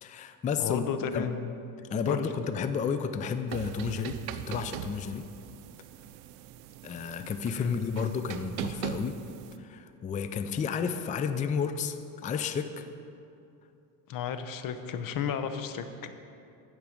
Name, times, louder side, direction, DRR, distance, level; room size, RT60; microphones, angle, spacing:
voice 1, 0.0-0.9 1.1-1.3 1.9-5.2 6.8-9.2 9.6-12.9, left 6 dB, 20° left, 9 dB, 0.3 m, -32 dB
voice 2, 0.6-1.5 2.1-2.3 7.6-8.2 14.1-16.1, left 7 dB, 50° left, 9 dB, 0.8 m, -33 dB
sound 1, 3.5-9.6, right 10 dB, 90° right, 0.5 m, -40 dB
8.8 x 4.7 x 7.1 m, 2.6 s
supercardioid pair, 95°, 44 cm